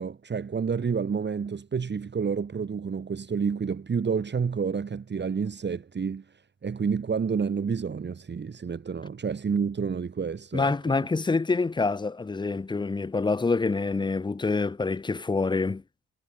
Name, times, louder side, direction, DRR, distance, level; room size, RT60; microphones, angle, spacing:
voice 1, 0.0-6.2 6.6-10.9, right 6 dB, 35° right, 2.4 m, -29 dB
voice 2, 10.5-15.8, left 3 dB, 15° left, 0.7 m, -26 dB
cardioid pair, 90°, 30 cm